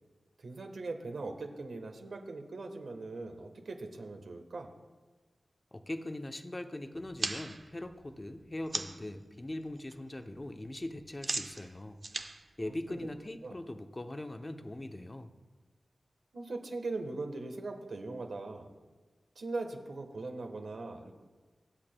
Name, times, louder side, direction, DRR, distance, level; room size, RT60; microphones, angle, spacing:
voice 1, 0.4-4.7 12.9-13.0 13.4-13.6 16.3-18.7 19.4-21.1, right 3 dB, 80° right, 5 dB, 1.2 m, -40 dB
voice 2, 5.7-12.0 12.6-15.3, left 1 dB, 25° left, 6 dB, 0.6 m, -41 dB
sound 1, 7.0-9.1 9.5-10.0 10.2-13.5, right 3 dB, 45° right, 0.6 m, -39 dB
24.0 x 8.6 x 2.2 m, 1.3 s
wide cardioid pair, 80°, 0 cm